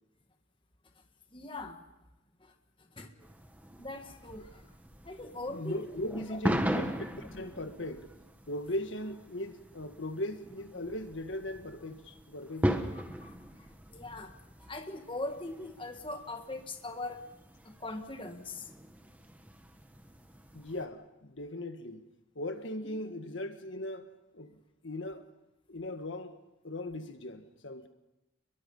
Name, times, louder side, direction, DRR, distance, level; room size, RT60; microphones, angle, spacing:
voice 1, 1.3-1.8 2.4-2.5 2.9-3.1 3.8-4.6 5.0-5.9 6.3-6.4 12.9-13.4 13.9-14.3 14.6-17.2 17.6-18.7 22.9-23.0, left 2 dB, 25° left, 1.8 m, -41 dB
sound 1, 3.2-20.9, equal, 10° right, 1.4 m, -39 dB
voice 2, 5.5-8.1 8.5-12.9 20.5-22.1 22.3-24.1 24.3-25.2 25.7-26.4 26.6-27.9, left 1 dB, 75° left, 1.7 m, -39 dB
29.0 x 22.5 x 5.5 m
head